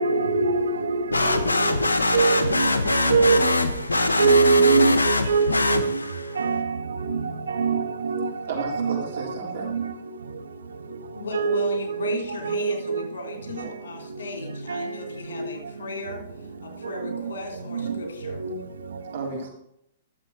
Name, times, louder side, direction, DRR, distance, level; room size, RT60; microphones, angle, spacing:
voice 1, 0.0-1.4 2.1-3.4 4.2-5.9 6.4-6.7 7.1-7.2 7.5-8.3 8.6-9.0 9.7-9.9 11.3-11.6 12.0-12.2 12.4-13.0 14.7-14.9 17.7-18.0 18.4-18.5, right 4 dB, 80° right, 1.1 m, -22 dB
sound 1, 1.1-6.3, left 2 dB, 90° left, 1.0 m, -23 dB
voice 2, 8.5-9.7 19.1-19.5, right 4 dB, 60° right, 3.9 m, -32 dB
voice 3, 11.1-16.2 16.6-18.4, left 3 dB, 70° left, 3.3 m, -36 dB
11.5 x 7.5 x 4.8 m
hypercardioid pair, 120°, 0 cm